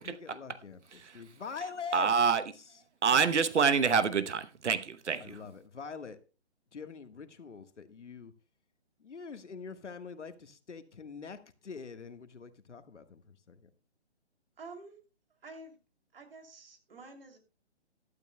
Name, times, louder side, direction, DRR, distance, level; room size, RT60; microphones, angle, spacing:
voice 1, 0.0-2.1 2.5-2.8 5.2-6.2 6.7-8.3 9.0-13.7, left 5 dB, 85° left, 1.5 m, -44 dB
voice 2, 1.9-2.4 3.0-5.3, right 6 dB, 75° right, 1.0 m, -26 dB
voice 3, 14.6-15.0 15.4-15.8 16.1-17.4, right 3 dB, 55° right, 2.9 m, -49 dB
16.5 x 12.0 x 2.2 m
hypercardioid pair, 165°, 35 cm